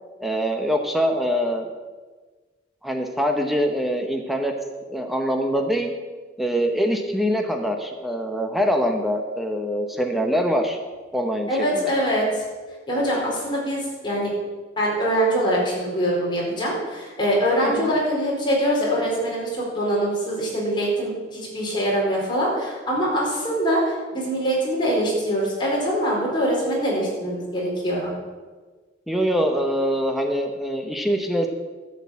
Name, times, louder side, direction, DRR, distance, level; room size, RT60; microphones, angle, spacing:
voice 1, 0.2-1.7 2.8-4.5 4.9-5.9 6.4-10.8 11.1-11.9 17.6-17.9 29.1-31.5, equal, ahead, 3 dB, 0.9 m, -24 dB
voice 2, 11.5-12.4 12.9-14.3 14.8-28.1, equal, 25° left, -4 dB, 4.4 m, -23 dB
12.0 x 6.6 x 8.4 m, 1.4 s
head